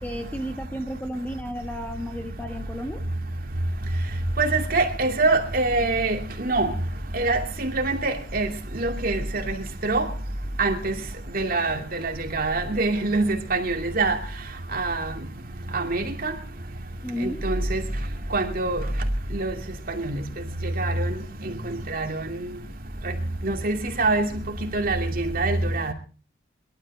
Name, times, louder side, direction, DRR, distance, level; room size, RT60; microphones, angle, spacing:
voice 1, 0.0-3.0 17.0-17.4, equal, 10° left, 1.5 m, -33 dB
voice 2, 4.4-6.7 7.2-8.5 8.8-9.2 9.5-9.6 9.8-10.0 10.6-10.9 11.3-11.8 12.3-14.1 14.7-15.0 15.7-16.3 17.4-17.8 18.3-18.8 19.4-19.5 20.8-20.9 21.9-22.1 23.4-24.2 24.7-25.0 25.3-25.9, right 3 dB, 50° right, 2.6 m, -24 dB
22.0 x 12.5 x 4.4 m
head